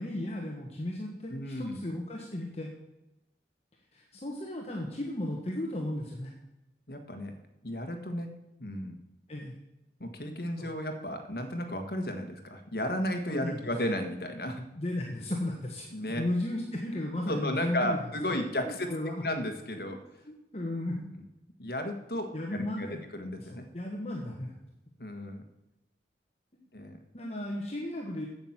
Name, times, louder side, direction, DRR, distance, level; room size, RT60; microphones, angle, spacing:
voice 1, 0.0-2.7 3.9-6.3 9.3-9.5 10.6-10.7 13.3-13.7 14.8-18.0 18.3-19.2 19.7-19.9 20.3-21.1 22.3-23.0 23.4-24.5 27.1-28.3, left 1 dB, 35° left, -1 dB, 1.3 m, -35 dB
voice 2, 1.3-1.8 6.9-7.3 7.6-8.3 8.6-8.9 10.0-14.7 15.9-16.2 17.3-18.9 19.2-20.0 21.6-22.9 23.1-23.6 25.0-25.4 26.7-27.0, left 1 dB, 55° left, 5 dB, 1.5 m, -34 dB
8.8 x 7.8 x 7.3 m, 0.91 s
head